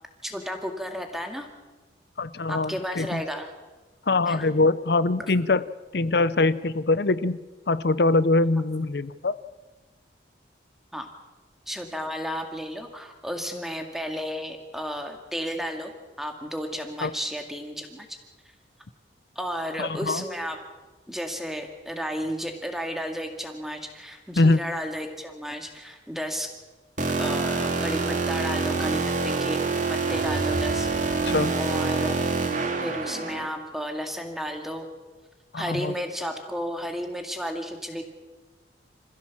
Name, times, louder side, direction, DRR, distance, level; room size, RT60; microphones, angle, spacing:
voice 1, 0.2-1.5 2.5-3.5 4.3-4.5 10.9-11.1 11.7-15.9 16.2-18.1 19.4-20.6 21.1-26.5 27.2-29.6 29.9-30.9 31.6-32.4 32.8-34.9 35.5-38.0, equal, ahead, 5 dB, 2.1 m, -33 dB
voice 2, 2.2-3.2 4.1-5.6 5.9-7.4 7.7-9.4 17.0-17.1 19.8-20.2 24.4-24.6 31.3-31.5 35.5-35.9, left 2 dB, 60° left, 16 dB, 0.7 m, -23 dB
sound 1, 27.0-33.5, right 4 dB, 45° right, 2.1 m, -26 dB
sound 2, 29.9-31.9, equal, 25° right, 2.8 m, -36 dB
26.0 x 15.5 x 7.3 m, 1.2 s
head